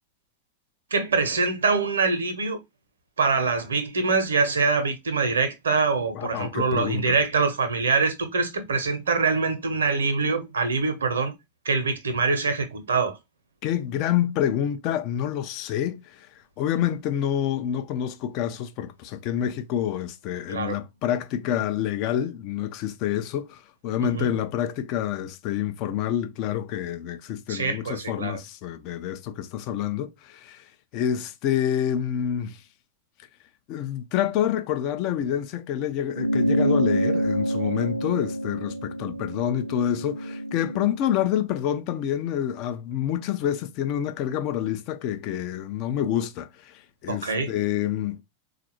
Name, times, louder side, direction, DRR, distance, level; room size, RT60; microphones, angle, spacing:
voice 1, 0.9-2.6 3.2-11.3 11.6-13.2 20.5-20.8 24.0-24.3 27.5-28.4 47.1-47.5, right 4 dB, 70° right, 0.9 m, -24 dB
voice 2, 6.1-7.2 13.6-16.3 16.6-30.7 30.9-32.6 33.7-48.2, left 10 dB, 40° left, 0.5 m, -27 dB
sound 1, 36.2-40.9, right 1 dB, 90° right, 0.4 m, -26 dB
3.9 x 2.5 x 2.9 m
figure-of-eight pair, 90°, 0 cm